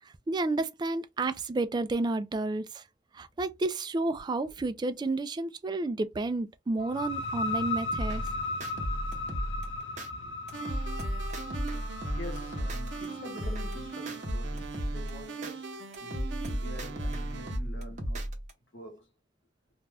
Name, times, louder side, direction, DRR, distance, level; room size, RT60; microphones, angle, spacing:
voice 1, 0.3-2.8 3.1-8.2, right 2 dB, 25° right, 0.3 m, -31 dB
sound 1, 6.8-14.3, left 2 dB, 70° left, 0.5 m, -37 dB
sound 2, 7.9-10.1 10.5-13.1 13.4-15.5 15.9-18.5, equal, 40° right, 0.8 m, -34 dB
sound 3, 10.5-17.6, right 4 dB, 85° right, 0.6 m, -41 dB
voice 2, 12.1-18.3 18.7-19.1, left 1 dB, 85° left, 0.9 m, -46 dB
2.5 x 2.2 x 3.3 m
head